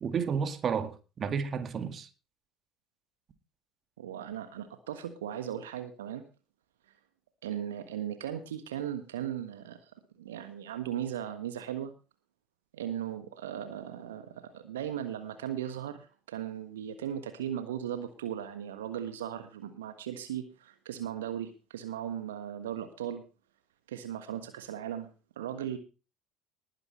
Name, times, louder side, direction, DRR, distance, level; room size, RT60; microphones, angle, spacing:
voice 1, 0.0-2.1, right 6 dB, 40° right, 1.9 m, -31 dB
voice 2, 4.0-6.2 7.4-9.9 10.2-11.9 12.7-23.2 23.9-25.1 25.4-25.8, right 10 dB, 75° right, 1.5 m, -37 dB
19.5 x 10.0 x 3.2 m
figure-of-eight pair, 60°, 0 cm